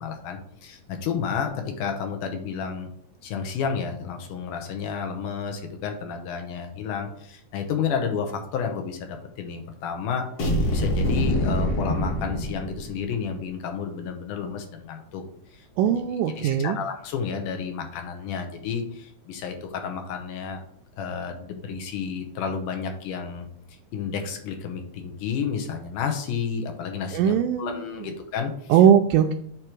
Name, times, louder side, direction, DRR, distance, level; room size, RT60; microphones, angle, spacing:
voice 1, 0.0-2.9 3.2-10.3 10.7-15.2 15.5-16.0 16.4-20.6 21.0-23.5 23.9-28.8, left 6 dB, 80° left, 4 dB, 2.5 m, -31 dB
sound 1, 10.4-13.2, equal, 55° left, 2.2 m, -25 dB
voice 2, 15.8-16.8 27.1-27.8 28.7-29.3, right 9 dB, 80° right, 3 dB, 2.0 m, -19 dB
8.3 x 3.0 x 6.0 m, 0.65 s
omnidirectional pair, 3.7 m